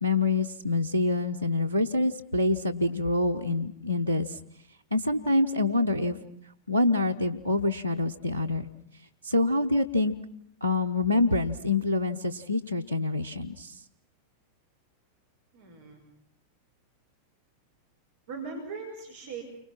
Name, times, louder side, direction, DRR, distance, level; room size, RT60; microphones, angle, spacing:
voice 1, 0.0-4.4 4.9-6.2 6.7-8.7 9.2-10.1 10.6-13.8, left 2 dB, 90° left, 7 dB, 1.0 m, -26 dB
voice 2, 15.5-16.0 18.3-19.4, right 4 dB, 55° right, 2 dB, 5.5 m, -39 dB
30.0 x 25.0 x 5.9 m, 0.70 s
figure-of-eight pair, 90°, 0 cm